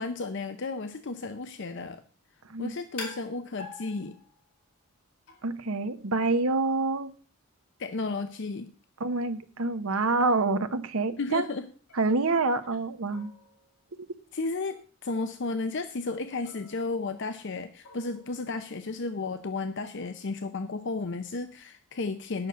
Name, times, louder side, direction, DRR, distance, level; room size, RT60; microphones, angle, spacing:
voice 1, 0.0-2.0 2.6-4.2 7.8-8.7 11.2-11.7 14.3-22.5, left 3 dB, 55° left, 9 dB, 0.6 m, -33 dB
sound 1, 3.0-4.6 5.3-5.7 9.7-9.8 10.3-10.6 11.9-12.9 13.1-14.2 14.6-14.9 16.4-17.4 17.8-18.5, left 3 dB, 70° left, 2.8 m, -47 dB
voice 2, 5.4-7.1 9.0-11.4 12.0-13.3, right 3 dB, 70° right, 10 dB, 0.9 m, -27 dB
9.7 x 6.4 x 6.6 m, 0.41 s
head